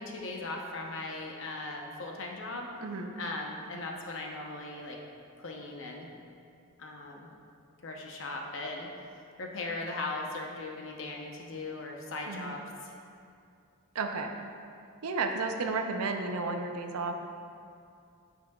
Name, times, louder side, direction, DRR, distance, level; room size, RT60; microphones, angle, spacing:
voice 1, 0.0-2.7 3.2-5.0 5.4-6.1 6.8-7.3 7.8-8.9 9.4-13.0, left 2 dB, 60° left, 0 dB, 0.7 m, -38 dB
voice 2, 13.9-14.3 15.0-17.3, right 3 dB, 85° right, 4 dB, 0.6 m, -32 dB
9.3 x 5.8 x 2.3 m, 2.4 s
head